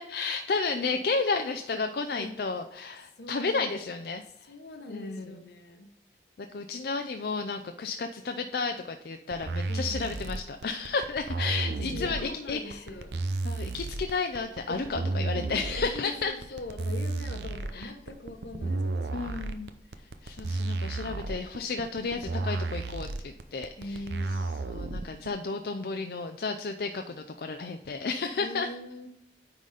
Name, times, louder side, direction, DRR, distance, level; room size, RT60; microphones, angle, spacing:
voice 1, 0.0-4.5 4.9-5.4 6.4-12.8 13.4-16.3 17.7-17.9 19.1-19.7 20.2-24.0 24.7-28.7, left 4 dB, 60° left, 6 dB, 0.4 m, -32 dB
voice 2, 3.2-3.8 4.5-5.9 9.7-10.0 11.7-13.1 14.7-15.1 15.8-19.4 23.8-24.6 28.4-29.1, left 2 dB, 75° left, 7 dB, 1.0 m, -41 dB
sound 1, 9.3-25.3, right 2 dB, 75° right, 0.6 m, -32 dB
9.4 x 3.9 x 4.9 m, 0.89 s
head